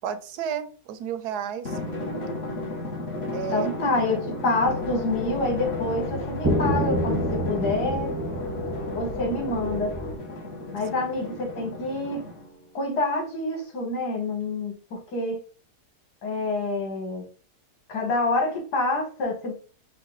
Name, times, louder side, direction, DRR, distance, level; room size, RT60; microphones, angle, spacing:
voice 1, 0.0-1.8 3.3-3.7, right 8 dB, 85° right, 11 dB, 1.2 m, -32 dB
Drum, 1.6-12.6, left 2 dB, 45° left, 1.2 m, -35 dB
voice 2, 3.5-8.1 8.9-9.9 10.7-12.2 12.7-15.4 16.2-17.2 17.9-19.5, left 2 dB, 90° left, 1 dB, 2.1 m, -27 dB
sound 1, 4.6-10.2, left 3 dB, 70° left, 1.4 m, -34 dB
sound 2, 6.4-10.3, right 1 dB, 15° right, 0.6 m, -28 dB
5.6 x 2.2 x 3.9 m, 0.38 s
omnidirectional pair, 1.7 m